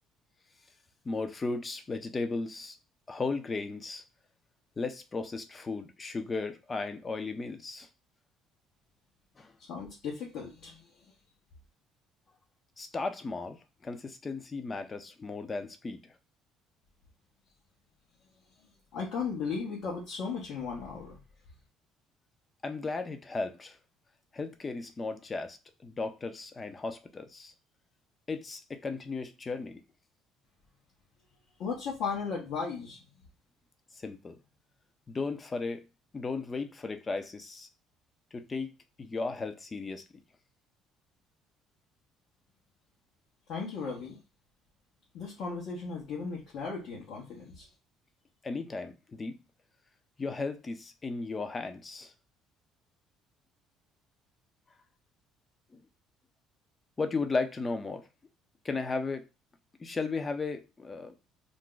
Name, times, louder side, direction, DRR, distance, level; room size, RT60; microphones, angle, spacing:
voice 1, 1.0-2.8 3.1-4.0 4.8-7.9 9.4-9.6 12.8-16.1 22.6-23.8 24.3-27.5 28.3-29.8 33.9-34.4 35.1-35.8 36.1-37.7 38.3-38.7 39.0-40.0 48.4-49.4 50.2-52.1 55.7-55.8 57.0-58.1 58.6-59.3 59.8-61.1, left 3 dB, 30° left, 0.6 m, -35 dB
voice 2, 9.6-11.1 18.9-21.2 31.6-33.0 43.5-44.2 45.1-47.7, left 5 dB, 70° left, 1.0 m, -36 dB
2.6 x 2.2 x 3.8 m
supercardioid pair, 80°, 0 cm